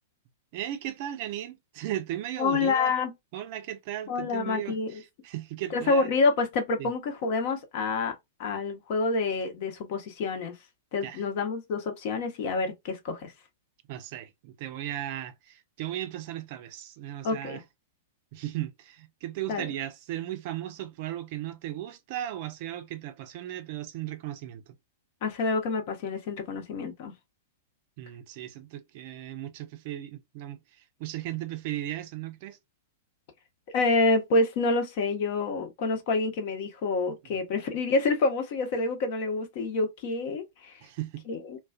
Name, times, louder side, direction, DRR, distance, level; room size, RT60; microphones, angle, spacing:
voice 1, 0.5-2.9 3.3-6.1 6.8-6.9 11.0-11.2 13.9-17.6 18.3-24.7 28.0-32.6 40.8-41.2, right 13 dB, 50° right, 0.5 m, -36 dB
voice 2, 2.4-3.1 4.1-4.9 5.7-8.1 8.4-10.5 10.9-13.3 17.2-17.6 19.5-19.7 25.2-27.1 33.7-40.8 41.3-41.6, left 3 dB, 50° left, 0.8 m, -27 dB
2.4 x 2.3 x 2.3 m
figure-of-eight pair, 100°, 0 cm